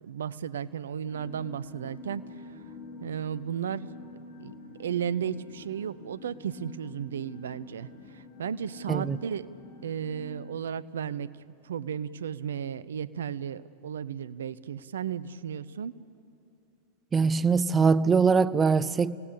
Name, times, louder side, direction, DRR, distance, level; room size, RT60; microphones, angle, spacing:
voice 1, 0.0-2.2 3.0-3.9 4.4-4.5 4.8-9.5 9.8-11.3 11.6-15.9, right 8 dB, 65° right, 0.6 m, -34 dB
sound 1, 1.0-10.5, left 2 dB, 40° left, 4.0 m, -47 dB
voice 2, 17.1-19.1, right 5 dB, 20° right, 0.6 m, -22 dB
29.5 x 17.5 x 8.6 m
figure-of-eight pair, 90°, 0 cm